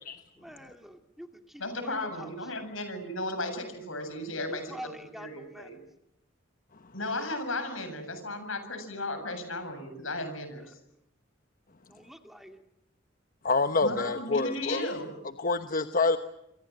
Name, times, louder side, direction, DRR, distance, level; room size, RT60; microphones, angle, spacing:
voice 1, 0.4-2.7 4.5-5.7 10.7-10.8 11.9-12.6, equal, ahead, 2.2 m, -46 dB
voice 2, 1.6-5.8 6.9-10.8 13.8-15.1, left 2 dB, 85° left, 7.7 m, -35 dB
voice 3, 13.4-15.0 15.4-16.2, left 3 dB, 45° left, 1.1 m, -27 dB
28.0 x 24.5 x 7.5 m
head